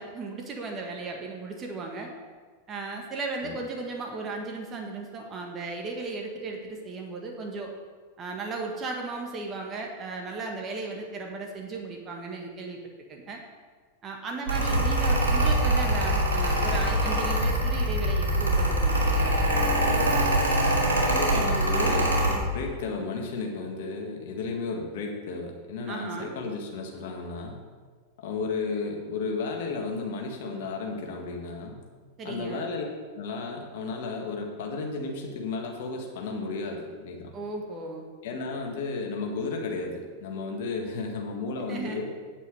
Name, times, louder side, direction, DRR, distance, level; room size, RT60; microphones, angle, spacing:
voice 1, 0.0-2.1 2.7-7.7 8.2-12.8 13.1-13.4 14.0-19.4 25.9-26.3 32.2-32.7 37.3-38.0 41.7-42.0, right 3 dB, 30° right, 1 dB, 1.6 m, -36 dB
Mechanical fan, 14.5-22.4, right 1 dB, 80° right, 2.5 m, -23 dB
voice 2, 14.6-15.0 21.1-27.6 28.2-31.8 32.3-32.8 33.1-37.3 38.2-42.1, left 4 dB, 60° left, 2 dB, 1.8 m, -33 dB
9.1 x 8.1 x 4.9 m, 1.5 s
figure-of-eight pair, 95°, 0 cm